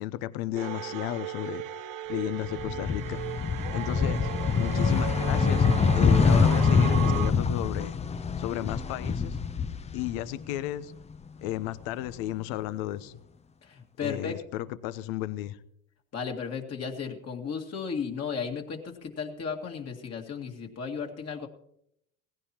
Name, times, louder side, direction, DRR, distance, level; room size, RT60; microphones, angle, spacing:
voice 1, 0.0-1.6 2.1-3.2 3.7-4.3 4.5-5.6 5.9-8.0 8.4-9.4 9.9-10.9 11.4-13.2 14.0-15.6, left 13 dB, 65° left, 15 dB, 0.9 m, -33 dB
sound 1, 0.6-7.3, right 13 dB, 50° right, 0.8 m, -36 dB
sound 2, 2.4-10.6 10.9-12.1, left 5 dB, 15° left, 0.6 m, -25 dB
voice 2, 13.6-14.4 16.1-21.5, left 6 dB, 40° left, 1 dB, 2.2 m, -35 dB
17.5 x 15.5 x 2.9 m, 0.74 s
hypercardioid pair, 80°, 40 cm